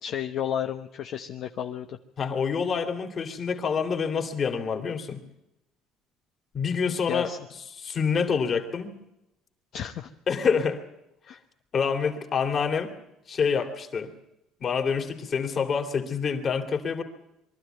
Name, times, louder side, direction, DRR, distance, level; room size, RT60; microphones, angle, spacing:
voice 1, 0.0-2.0 7.1-7.4 9.7-10.1 11.3-11.4, left 9 dB, 55° left, 5 dB, 1.1 m, -32 dB
voice 2, 2.2-5.2 6.5-7.3 7.7-8.9 10.3-10.8 11.7-12.9 13.3-14.1 14.6-17.0, left 6 dB, 40° left, 4 dB, 2.9 m, -27 dB
23.5 x 13.0 x 9.2 m, 0.89 s
cardioid pair, 120°, 0 cm